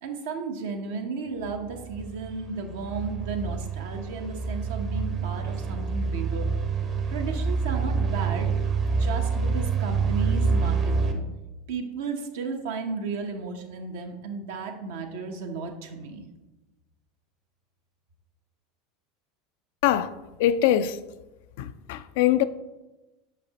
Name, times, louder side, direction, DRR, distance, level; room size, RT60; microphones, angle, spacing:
voice 1, 0.0-6.5 7.1-8.5 8.9-11.2 11.7-16.3, right 4 dB, 70° right, 0.9 m, -34 dB
sound 1, 1.5-11.1, right 4 dB, 40° right, 0.9 m, -27 dB
voice 2, 19.8-21.0 21.6-22.4, left 11 dB, 65° left, 0.3 m, -23 dB
6.7 x 5.1 x 2.9 m
hypercardioid pair, 85°, 0 cm